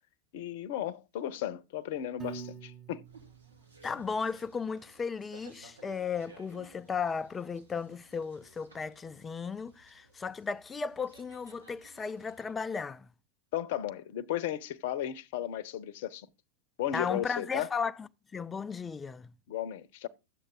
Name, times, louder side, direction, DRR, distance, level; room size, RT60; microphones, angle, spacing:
voice 1, 0.3-3.1 13.5-16.3 16.8-17.7 19.5-20.1, left 11 dB, 50° left, 0.7 m, -35 dB
Piano, 2.2-4.4, right 4 dB, 20° right, 1.2 m, -46 dB
sound 1, 3.0-12.5, right 3 dB, 75° right, 1.9 m, -58 dB
voice 2, 3.8-13.1 16.9-19.3, left 5 dB, 15° left, 0.5 m, -35 dB
11.5 x 7.8 x 3.7 m
figure-of-eight pair, 90°, 0 cm